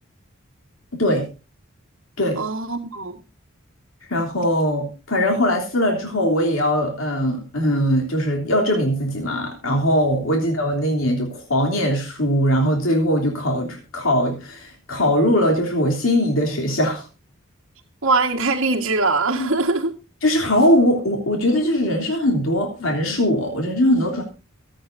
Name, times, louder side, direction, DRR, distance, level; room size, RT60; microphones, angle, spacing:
voice 1, 2.3-3.2 18.0-19.9, right 3 dB, 65° right, 1.6 m, -22 dB
voice 2, 4.1-17.0 19.4-19.5 20.2-24.2, equal, 75° left, 3.2 m, -20 dB
23.5 x 8.8 x 2.6 m
head